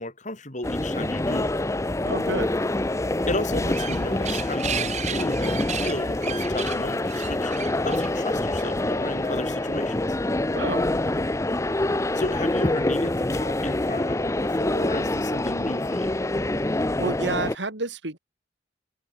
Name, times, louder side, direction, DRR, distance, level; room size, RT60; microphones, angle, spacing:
voice 1, 0.0-1.5 3.3-7.5 7.8-10.2 12.1-16.2, left 2 dB, 40° left, 6.2 m, -34 dB
sound 1, 0.6-17.6, left 1 dB, 15° left, 0.6 m, -26 dB
voice 2, 2.0-2.6 10.6-10.9 17.0-18.2, right 2 dB, 70° right, 3.0 m, -29 dB
sound 2, 3.5-8.9, right 7 dB, 40° right, 4.6 m, -34 dB
head